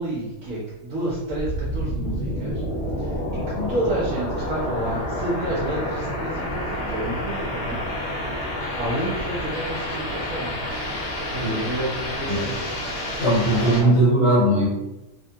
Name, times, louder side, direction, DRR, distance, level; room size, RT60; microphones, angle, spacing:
voice 1, 0.0-2.6 3.0-7.8 8.8-10.6 11.3-12.7 13.6-13.9, right 1 dB, 70° right, -6 dB, 1.1 m, -30 dB
sound 1, 1.3-13.8, equal, 85° left, 1.2 m, -29 dB
voice 2, 13.2-14.7, right 1 dB, 70° left, -7 dB, 1.4 m, -19 dB
3.0 x 2.2 x 2.7 m, 0.96 s
omnidirectional pair, 1.5 m